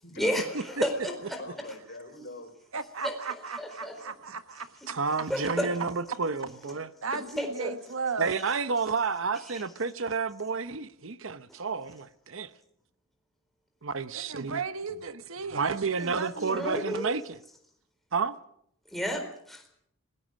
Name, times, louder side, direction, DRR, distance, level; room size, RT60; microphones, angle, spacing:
voice 1, 0.0-2.5, left 2 dB, 55° left, 5.0 m, -44 dB
voice 2, 0.8-1.4 3.0-3.1 3.6-3.9 5.3-5.7 7.4-7.7 9.5-9.6 16.5-17.1 18.9-19.7, equal, ahead, 4.1 m, -31 dB
voice 3, 2.7-4.9 7.0-8.4 14.1-16.7, right 4 dB, 80° right, 1.4 m, -36 dB
voice 4, 4.9-6.9 8.2-12.5 13.8-14.6 15.5-17.4 18.1-18.4, right 5 dB, 65° right, 0.8 m, -30 dB
26.5 x 19.0 x 6.3 m
head